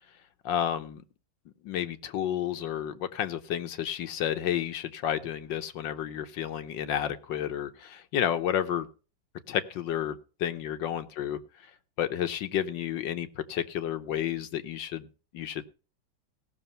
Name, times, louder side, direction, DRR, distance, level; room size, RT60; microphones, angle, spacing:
voice 1, 0.4-1.0 1.6-8.9 9.5-11.4 12.0-15.1 15.3-15.6, left 10 dB, 75° left, 10 dB, 1.6 m, -31 dB
17.5 x 6.4 x 5.6 m, 0.34 s
omnidirectional pair, 2.1 m